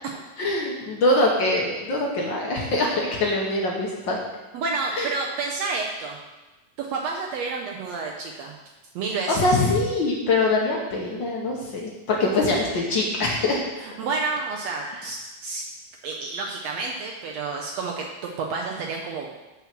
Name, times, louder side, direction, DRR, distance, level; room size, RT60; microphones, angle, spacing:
voice 1, 0.4-4.2 5.0-5.1 9.3-13.6, left 2 dB, 75° left, -2 dB, 1.0 m, -23 dB
voice 2, 4.5-6.2 6.8-8.5 8.9-9.6 13.8-15.6 16.0-19.3, right 4 dB, 75° right, 0 dB, 1.6 m, -30 dB
7.0 x 6.1 x 6.0 m, 1.1 s
omnidirectional pair, 3.6 m